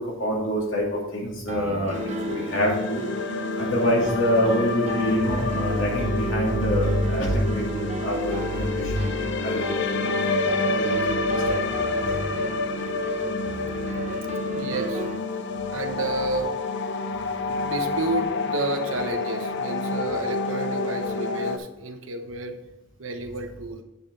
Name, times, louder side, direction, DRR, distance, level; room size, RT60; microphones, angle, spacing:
voice 1, 0.0-2.0 2.2-3.0 3.6-9.1 9.4-9.6 9.9-10.0 10.7-11.6 12.0-12.2, equal, 85° left, -3 dB, 2.7 m, -25 dB
Piano, 1.5-15.2, right 3 dB, 35° right, 0.5 m, -35 dB
sound 1, 1.9-21.6, left 3 dB, 60° left, 0.6 m, -28 dB
voice 2, 14.6-15.0 15.7-16.5 17.5-22.6 23.0-23.8, right 2 dB, 80° right, 6 dB, 0.9 m, -31 dB
8.3 x 6.1 x 4.0 m, 0.89 s
head